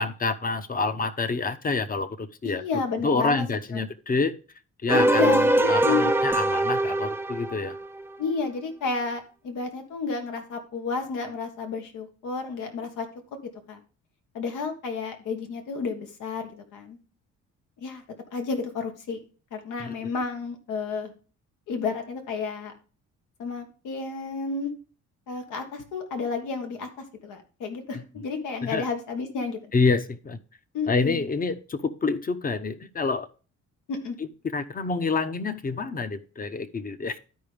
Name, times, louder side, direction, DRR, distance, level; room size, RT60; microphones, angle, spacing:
voice 1, 0.0-2.6 3.0-4.3 4.8-7.7 19.8-20.1 27.9-28.0 28.6-28.9 29.7-30.4 30.9-33.3 34.2-37.2, left 4 dB, 30° left, 12 dB, 0.8 m, -27 dB
voice 2, 2.4-3.4 4.9-6.1 8.2-13.1 13.4-13.8 14.3-17.0 17.8-18.0 18.3-19.2 19.5-21.1 21.7-22.7 23.4-24.7 25.3-29.6 30.7-31.2 33.9-34.2, left 4 dB, 85° left, 5 dB, 1.7 m, -31 dB
sound 1, 4.9-8.1, right 1 dB, 10° right, 0.5 m, -23 dB
12.5 x 5.0 x 3.4 m, 0.36 s
cardioid pair, 90°, 30 cm